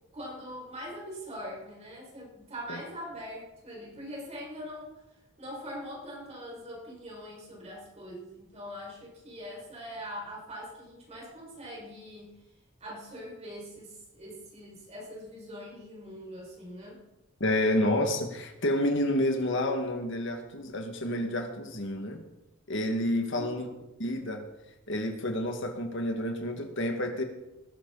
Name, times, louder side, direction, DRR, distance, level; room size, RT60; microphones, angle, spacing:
voice 1, 0.1-5.0 5.4-12.3 12.8-17.0 23.3-23.8, equal, 35° right, -3 dB, 5.9 m, -42 dB
voice 2, 17.4-22.2 22.7-23.7 24.0-24.5 24.9-27.2, left 1 dB, 65° left, 3 dB, 2.1 m, -29 dB
20.0 x 12.0 x 4.2 m, 0.96 s
head